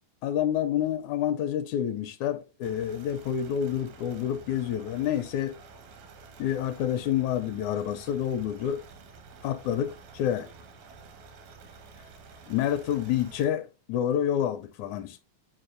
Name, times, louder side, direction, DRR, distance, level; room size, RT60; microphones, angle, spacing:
voice 1, 0.2-5.6 6.4-8.8 9.4-10.5 12.5-15.2, left 10 dB, 80° left, 1.9 m, -28 dB
sound 1, 2.6-13.5, right 4 dB, 80° right, 2.7 m, -50 dB
9.6 x 4.4 x 2.5 m
omnidirectional pair, 3.5 m